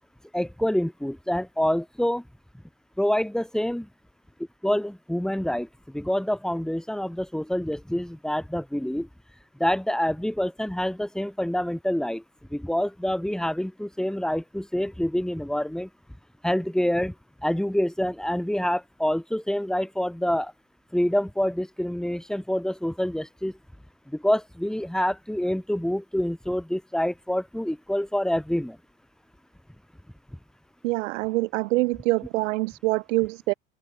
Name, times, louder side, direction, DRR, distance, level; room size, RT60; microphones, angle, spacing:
voice 1, 0.3-2.2 3.0-3.9 4.6-5.7 5.9-9.1 9.6-12.2 12.5-15.9 16.4-17.1 17.4-20.5 20.9-23.5 24.1-28.8, equal, ahead, 5.5 m, -26 dB
voice 2, 30.8-33.5, right 22 dB, 65° right, 1.5 m, -25 dB
hypercardioid pair, 95°, 40 cm